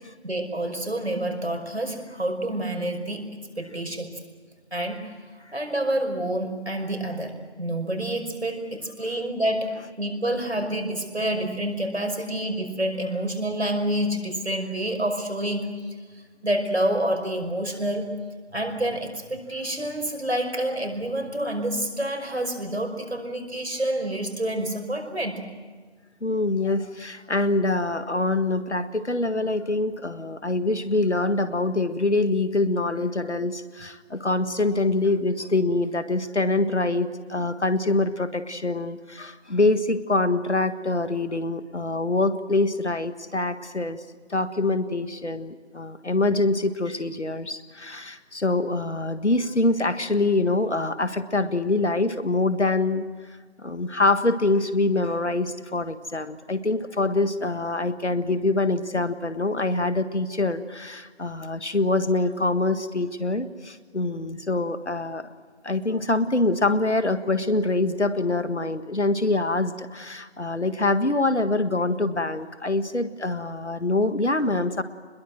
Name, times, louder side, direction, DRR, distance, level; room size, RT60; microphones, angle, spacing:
voice 1, 0.2-3.3 3.6-4.1 4.7-9.7 10.0-15.7 16.4-18.1 18.5-25.5, right 1 dB, 70° right, 4 dB, 5.5 m, -28 dB
voice 2, 26.2-44.0 44.3-53.1 53.6-65.3 65.6-74.8, left 2 dB, 80° left, 11 dB, 1.7 m, -25 dB
26.0 x 21.5 x 7.7 m, 1.5 s
figure-of-eight pair, 170°, 34 cm